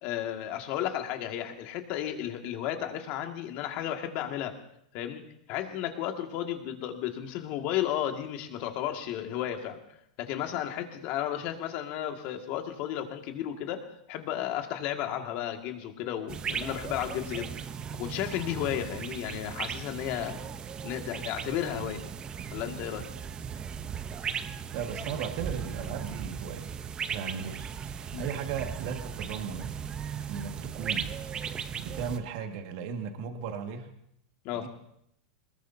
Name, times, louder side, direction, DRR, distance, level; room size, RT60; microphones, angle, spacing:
voice 1, 0.0-4.6 4.9-5.2 5.5-9.8 10.2-20.4 20.8-22.0 22.5-23.1 28.1-28.2 34.4-34.7, left 11 dB, 50° left, 4 dB, 2.1 m, -33 dB
sound 1, 16.3-32.2, right 7 dB, 25° right, 0.8 m, -37 dB
voice 2, 24.4-26.7 27.1-29.7 30.3-31.1 31.4-33.9 34.5-34.7, right 7 dB, 55° right, 5 dB, 1.9 m, -37 dB
22.0 x 20.5 x 2.8 m, 0.73 s
supercardioid pair, 130°, 4 cm